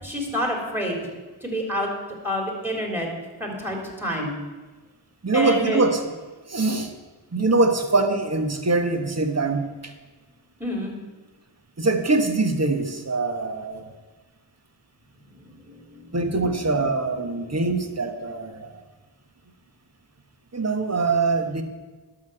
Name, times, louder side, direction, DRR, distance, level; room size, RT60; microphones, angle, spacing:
voice 1, 0.0-1.0 1.4-1.9 2.2-3.1 3.4-4.3 5.3-5.8 10.6-10.9 15.4-16.5 17.2-17.5, equal, 5° right, 1 dB, 3.4 m, -28 dB
voice 2, 5.2-6.0 6.5-6.9 7.3-9.7 11.8-13.9 16.1-18.7 20.5-21.6, right 3 dB, 35° right, 7 dB, 1.4 m, -23 dB
11.5 x 6.1 x 7.7 m, 1.3 s
cardioid pair, 50°, 47 cm